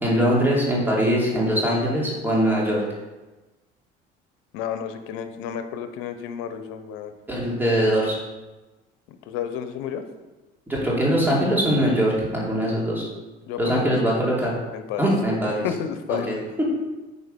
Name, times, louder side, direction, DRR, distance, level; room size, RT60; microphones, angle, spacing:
voice 1, 0.0-2.8 7.3-8.1 10.7-13.0 13.6-14.5 15.0-15.7 16.1-16.3, equal, 10° right, -5 dB, 2.9 m, -22 dB
voice 2, 4.5-7.1 9.1-10.0 13.5-14.4 14.7-15.0 15.6-16.4, left 8 dB, 85° left, 9 dB, 0.9 m, -31 dB
9.4 x 4.4 x 5.3 m, 1.1 s
cardioid pair, 115°, 21 cm